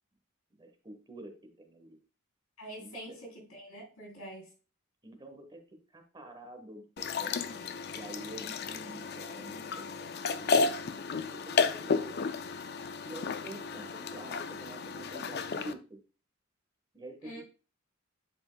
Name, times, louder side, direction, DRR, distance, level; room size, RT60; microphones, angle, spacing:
voice 1, 0.5-2.0 2.8-2.9 5.0-5.6 5.9-12.2 13.0-16.0 16.9-17.4, right 1 dB, 20° right, 1.0 m, -48 dB
voice 2, 2.6-4.5 17.2-17.4, right 1 dB, 85° left, 3.5 m, -45 dB
sound 1, 7.0-15.7, left 4 dB, 50° left, 0.4 m, -33 dB
11.0 x 4.4 x 2.2 m
head